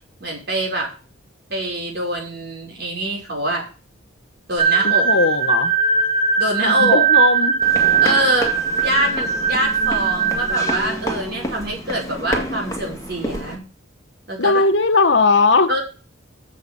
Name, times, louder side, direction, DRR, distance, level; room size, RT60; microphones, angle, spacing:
voice 1, 0.2-0.9 1.5-3.7 4.5-5.1 6.4-7.0 8.0-8.5 8.8-13.6 14.3-14.6 15.7-15.8, right 1 dB, 50° right, 5.2 m, -24 dB
sound 1, 4.6-10.8, right 6 dB, 25° right, 2.0 m, -19 dB
voice 2, 4.8-5.7 6.7-7.6 14.4-15.7, left 3 dB, 60° left, 1.0 m, -18 dB
sound 2, 7.6-13.6, equal, 15° left, 1.9 m, -29 dB
7.8 x 6.9 x 6.8 m
head